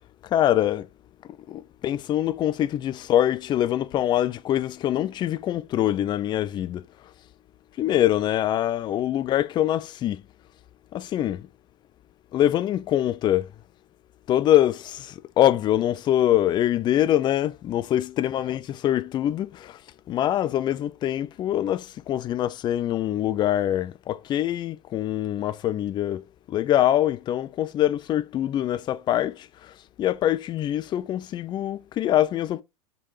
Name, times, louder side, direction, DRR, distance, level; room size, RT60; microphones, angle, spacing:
voice 1, 0.2-0.9 1.5-6.9 7.8-10.2 10.9-11.4 12.3-13.5 14.3-19.8 20.1-32.6, left 12 dB, 25° left, 0.4 m, -24 dB
4.5 x 3.4 x 3.2 m
figure-of-eight pair, 95°, 19 cm